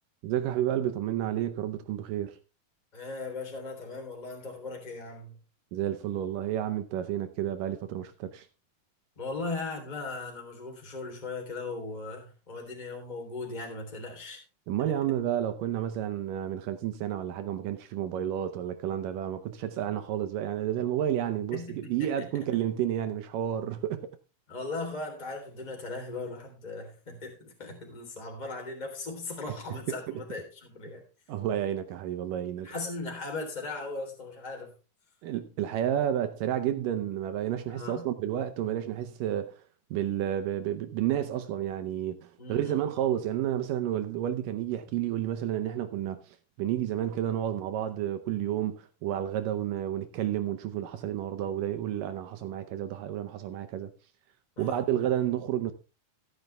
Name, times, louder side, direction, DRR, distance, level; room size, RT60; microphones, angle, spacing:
voice 1, 0.2-2.4 5.7-8.5 14.7-24.0 29.5-29.8 30.1-30.2 31.3-32.7 35.2-39.6 39.9-46.2 46.6-53.9 54.6-55.7, right 11 dB, 75° right, 2.1 m, -31 dB
voice 2, 2.9-5.4 9.2-14.4 21.5-21.9 24.5-31.0 32.6-34.7 37.7-38.0 42.4-42.8 54.6-54.8, left 3 dB, 10° left, 2.9 m, -38 dB
14.0 x 9.4 x 3.4 m
omnidirectional pair, 4.5 m